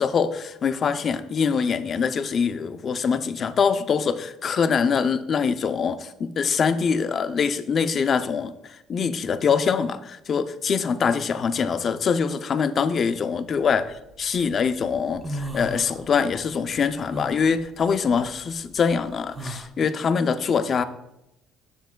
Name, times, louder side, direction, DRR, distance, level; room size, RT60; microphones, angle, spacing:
voice 1, 0.0-13.8 14.2-20.8, left 6 dB, 40° left, 11 dB, 0.5 m, -24 dB
sound 1, 13.6-14.4 14.8-16.4 16.7-19.7, right 1 dB, 20° right, 0.6 m, -36 dB
10.5 x 7.1 x 2.2 m, 0.87 s
cardioid pair, 115°, 0 cm